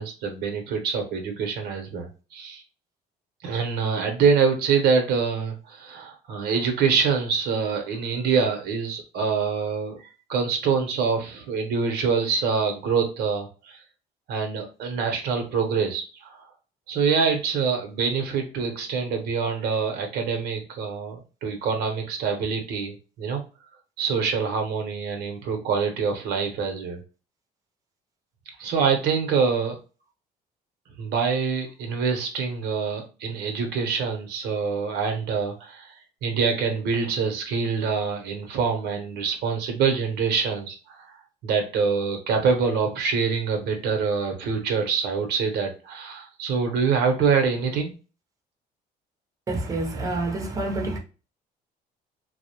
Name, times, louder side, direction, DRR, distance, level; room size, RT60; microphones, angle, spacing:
voice 1, 0.0-2.6 3.4-10.0 10.3-13.8 14.3-16.4 16.9-23.4 24.0-27.0 28.6-29.8 31.0-36.0 36.2-41.1 41.4-47.9, right 5 dB, 80° right, 0.7 m, -25 dB
voice 2, 49.5-51.0, right 2 dB, 20° right, 0.6 m, -27 dB
2.3 x 2.0 x 2.8 m
cardioid pair, 110°, 17 cm